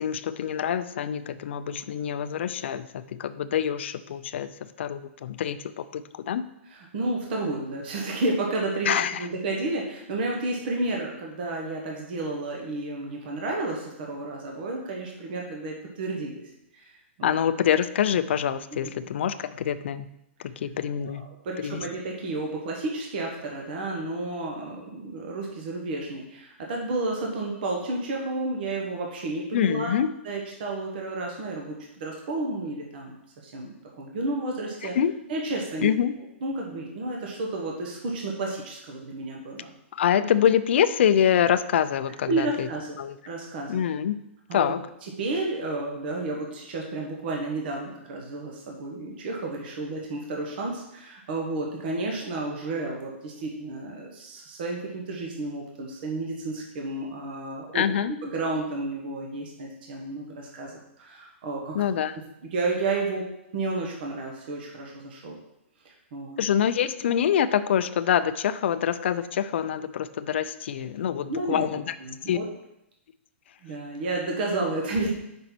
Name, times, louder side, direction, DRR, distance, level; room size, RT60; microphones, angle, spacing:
voice 1, 0.0-6.5 8.9-9.3 17.2-20.1 20.4-21.3 21.6-21.8 29.5-30.1 34.9-35.1 35.8-36.2 39.9-42.7 43.0-43.2 43.7-44.2 44.5-44.8 57.7-58.1 61.7-62.1 66.4-72.0 72.3-72.4, left 9 dB, 60° left, 13 dB, 0.4 m, -25 dB
voice 2, 6.7-8.9 9.2-16.4 16.7-17.4 18.8-19.1 21.0-30.0 30.2-33.1 33.4-35.0 35.3-35.9 36.4-39.7 42.3-43.0 43.2-43.8 44.5-44.7 45.2-57.8 58.2-61.8 62.5-65.4 65.8-66.4 71.3-71.7 72.0-72.4 73.6-75.1, right 2 dB, 45° right, 0 dB, 1.1 m, -31 dB
5.3 x 4.0 x 6.0 m, 0.84 s
hypercardioid pair, 165°, 7 cm